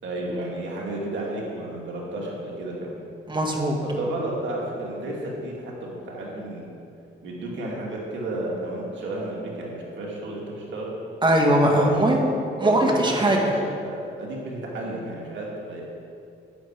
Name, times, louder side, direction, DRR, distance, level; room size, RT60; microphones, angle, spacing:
voice 1, 0.0-3.0 3.8-6.7 7.2-10.9 11.8-12.2 12.6-13.5 13.8-15.8, right 1 dB, 65° right, -3 dB, 2.6 m, -32 dB
voice 2, 3.3-3.8 11.2-12.3 12.6-13.4, right 1 dB, 25° right, 1 dB, 2.0 m, -20 dB
11.0 x 9.7 x 4.8 m, 2.5 s
cardioid pair, 90°, 20 cm